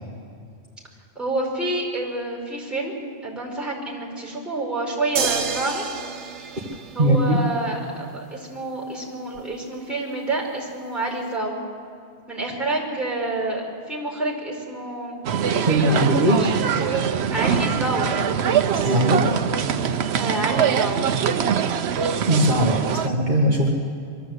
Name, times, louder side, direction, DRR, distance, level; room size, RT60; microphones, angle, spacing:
voice 1, 1.1-5.8 6.9-11.6 12.3-15.2 15.8-16.0 16.4-18.1 20.2-21.0, right 2 dB, ahead, -2 dB, 5.1 m, -28 dB
sound 1, 5.2-7.6 9.4-9.5, right 6 dB, 85° right, 1.3 m, -29 dB
voice 2, 7.0-7.4 15.7-16.4 18.7-19.3 22.3-23.7, right 1 dB, 40° right, -4 dB, 2.0 m, -19 dB
sound 2, 15.2-23.1, right 7 dB, 70° right, 1.0 m, -23 dB
23.5 x 14.0 x 8.1 m, 2.3 s
omnidirectional pair, 1.2 m